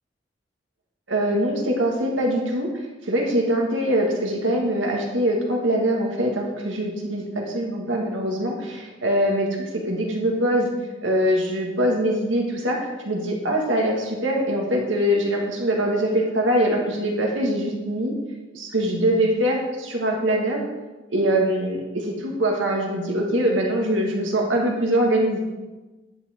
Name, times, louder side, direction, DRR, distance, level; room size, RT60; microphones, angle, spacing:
voice 1, 1.1-2.7 3.1-7.2 7.5-9.5 9.7-10.7 11.0-18.1 18.5-20.6 21.1-25.4, right 1 dB, 85° right, 0 dB, 2.1 m, -23 dB
10.0 x 7.2 x 4.6 m, 1.2 s
head